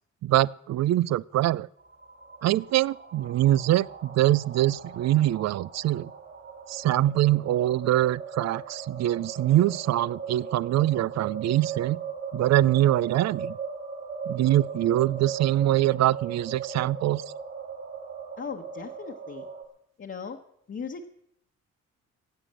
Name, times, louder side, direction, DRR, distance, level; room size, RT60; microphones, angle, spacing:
voice 1, 0.2-1.7 2.4-6.1 6.7-12.0 12.3-13.6 14.3-17.2, right 14 dB, 60° right, 22 dB, 0.5 m, -24 dB
sound 1, 1.8-19.6, right 6 dB, 45° right, 2.9 m, -38 dB
voice 2, 18.4-19.5 20.0-20.4 20.7-21.1, left 5 dB, 40° left, 1 dB, 1.2 m, -37 dB
16.5 x 8.2 x 7.6 m, 0.75 s
cardioid pair, 90°, 30 cm